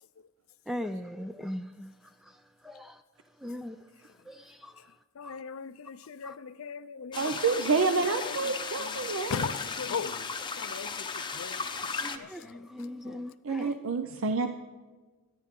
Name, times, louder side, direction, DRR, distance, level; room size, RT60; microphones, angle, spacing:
voice 1, 0.7-1.9 2.6-2.9 3.4-3.8 4.3-4.4 4.6-4.7 5.2-5.4 6.2-6.3 12.0-13.7, left 1 dB, ahead, 0.3 m, -38 dB
voice 2, 5.2-7.9 8.1-8.5 8.8-9.0 9.3-10.3 10.6-12.6 13.0-13.2, left 6 dB, 65° left, 0.5 m, -39 dB
sound 1, 7.1-12.2, left 5 dB, 20° left, 0.7 m, -35 dB
voice 3, 7.2-9.5 13.4-14.5, right 4 dB, 60° right, 0.6 m, -28 dB
24.0 x 10.5 x 3.7 m
head